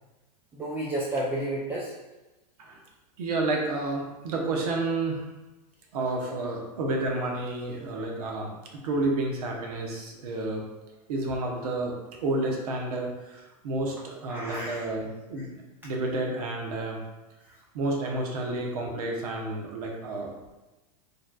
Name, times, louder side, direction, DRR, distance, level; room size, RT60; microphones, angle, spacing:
voice 1, 0.5-1.9 14.3-14.8 15.4-15.5, right 1 dB, 10° right, -5 dB, 0.3 m, -31 dB
voice 2, 3.2-5.2 5.9-8.5 8.8-10.6 11.1-11.9 12.2-15.5 15.8-17.0 17.7-20.5, right 2 dB, 70° right, 0 dB, 1.0 m, -30 dB
4.6 x 3.2 x 2.3 m, 1.1 s
supercardioid pair, 150°, 20 cm